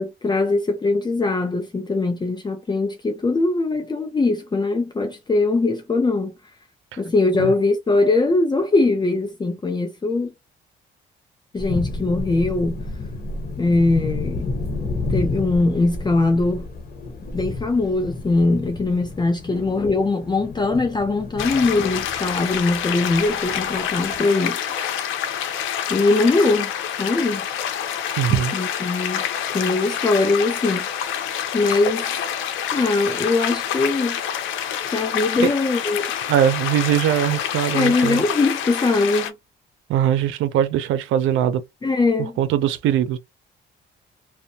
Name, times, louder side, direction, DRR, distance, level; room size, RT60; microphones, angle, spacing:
voice 1, 0.0-6.3 7.0-10.3 11.5-12.8 13.6-14.4 15.1-16.7 17.3-24.6 25.9-26.7 27.0-27.5 28.3-29.2 29.5-30.9 31.5-32.1 32.7-34.2 34.8-36.1 37.7-39.3 41.8-42.4, left 3 dB, 20° left, 0.5 m, -21 dB
sound 1, 11.6-24.2, left 3 dB, 50° left, 1.0 m, -31 dB
sound 2, 21.4-39.3, left 9 dB, 80° left, 0.6 m, -27 dB
voice 2, 28.2-28.5 35.4-35.5 36.3-38.2 39.9-41.6 42.4-43.2, right 10 dB, 90° right, 0.4 m, -21 dB
2.6 x 2.1 x 2.6 m
cardioid pair, 90°, 20 cm